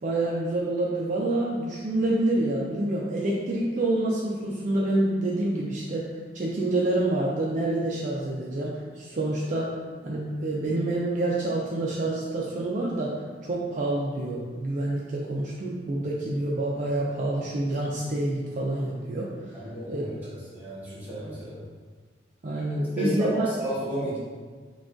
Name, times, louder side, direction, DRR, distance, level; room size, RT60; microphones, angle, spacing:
voice 1, 0.0-6.1 6.3-13.1 13.4-19.6 19.9-20.0 22.4-23.5, right 2 dB, 45° right, -4 dB, 0.4 m, -27 dB
voice 2, 19.5-20.1 20.5-21.6 23.0-24.2, right 1 dB, 10° right, -12 dB, 1.5 m, -31 dB
5.9 x 2.3 x 2.5 m, 1.5 s
head